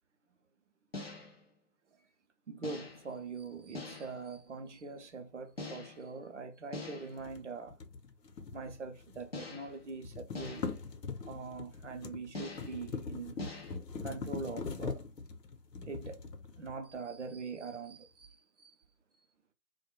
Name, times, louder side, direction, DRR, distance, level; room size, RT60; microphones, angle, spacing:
sound 1, 0.9-1.4 2.6-3.1 3.7-4.3 5.6-6.1 6.7-7.3 9.3-9.8 10.3-10.9 12.3-12.8 13.4-13.8, left 3 dB, 40° left, 0.5 m, -44 dB
voice 1, 2.5-7.8 8.5-10.7 11.2-13.4 14.0-15.0 15.9-16.2 16.6-18.7, right 4 dB, 45° right, 0.5 m, -43 dB
sound 2, 7.2-9.4 9.7-17.0, left 4 dB, 75° left, 0.7 m, -42 dB
2.2 x 2.1 x 2.9 m
figure-of-eight pair, 145°, 50 cm